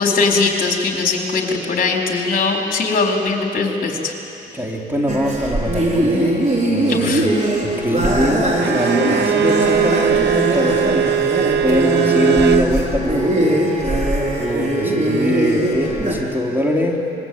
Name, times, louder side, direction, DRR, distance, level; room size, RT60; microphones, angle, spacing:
voice 1, 0.0-4.1 6.9-7.3, left 4 dB, 45° left, 1 dB, 4.1 m, -20 dB
voice 2, 4.5-6.4 6.7-13.6 14.4-17.0, left 1 dB, 10° right, 0 dB, 3.2 m, -22 dB
sound 1, 5.1-16.1, right 1 dB, 40° right, 5.4 m, -20 dB
Bowed string instrument, 8.6-12.7, right 11 dB, 60° right, 0.7 m, -20 dB
25.0 x 22.0 x 8.7 m, 2.8 s
cardioid pair, 90°, 20 cm